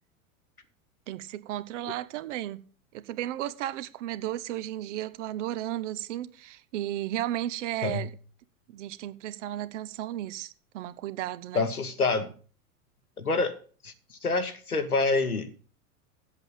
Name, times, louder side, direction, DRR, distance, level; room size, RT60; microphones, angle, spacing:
voice 1, 1.1-2.6 2.9-8.1 8.7-11.7, right 13 dB, 55° right, 1.0 m, -34 dB
voice 2, 11.5-12.3 13.2-13.5 13.8-15.5, left 3 dB, 90° left, 1.3 m, -27 dB
7.9 x 7.7 x 7.6 m
figure-of-eight pair, 85°, 43 cm